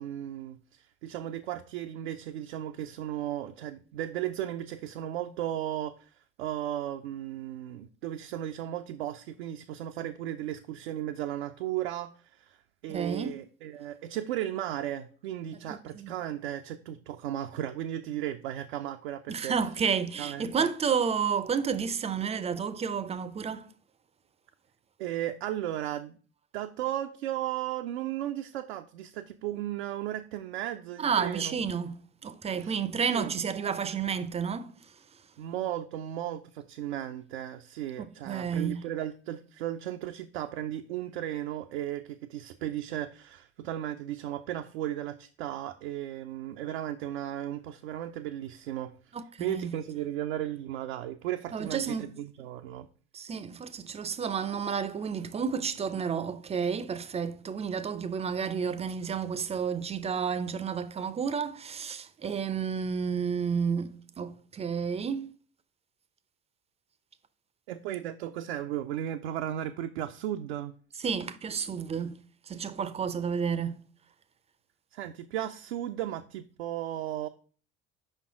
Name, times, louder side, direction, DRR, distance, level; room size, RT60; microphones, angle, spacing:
voice 1, 0.0-12.6 12.8-19.6 20.2-20.7 25.0-26.2 26.5-31.6 32.6-32.8 33.1-33.4 35.4-48.9 49.4-52.9 67.7-70.7 74.9-77.3, right 12 dB, 70° right, 0.5 m, -35 dB
voice 2, 12.9-13.4 15.7-16.1 19.3-23.6 31.0-34.7 38.0-38.9 49.1-49.8 51.5-52.1 53.1-65.3 71.0-72.2 72.5-73.8, right 6 dB, 20° right, 0.5 m, -31 dB
5.2 x 4.4 x 4.6 m
figure-of-eight pair, 65°, 34 cm